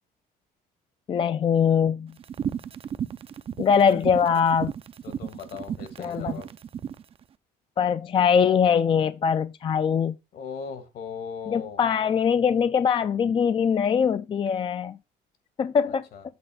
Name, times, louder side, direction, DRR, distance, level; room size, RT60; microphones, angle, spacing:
voice 1, 1.1-2.1 3.6-4.7 6.0-6.4 7.8-10.2 11.5-15.0 15.6-16.0, left 7 dB, 30° left, 0.3 m, -22 dB
sound 1, 2.2-7.0, right 8 dB, 35° right, 0.4 m, -34 dB
voice 2, 5.0-6.5 10.3-11.8 15.9-16.2, left 6 dB, 65° left, 1.7 m, -38 dB
7.9 x 3.3 x 5.5 m
cardioid pair, 110°, 17 cm